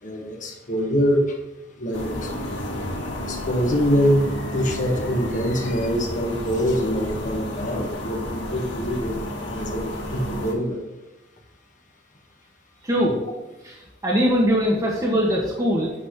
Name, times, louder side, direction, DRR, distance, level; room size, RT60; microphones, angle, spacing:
voice 1, 0.0-1.4 1.8-2.4 3.3-9.2 9.5-10.8, equal, 45° left, 1 dB, 1.6 m, -24 dB
sound 1, 1.9-10.5, left 1 dB, 80° left, 2.5 m, -32 dB
voice 2, 12.8-13.2 13.6-13.8 14.0-15.9, equal, 20° right, -3 dB, 1.5 m, -21 dB
9.1 x 4.2 x 6.5 m, 1.1 s
head